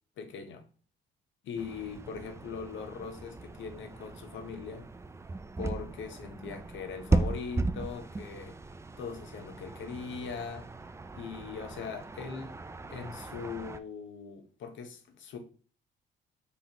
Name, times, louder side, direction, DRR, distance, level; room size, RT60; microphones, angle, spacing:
voice 1, 0.2-0.6 1.4-4.9 5.6-8.6 9.0-10.7 11.1-12.6 12.9-15.4, left 5 dB, 70° left, 0.8 m, -40 dB
sound 1, 1.6-13.8, right 3 dB, 15° right, 0.3 m, -36 dB
5.6 x 3.2 x 2.8 m
cardioid pair, 90°, 20 cm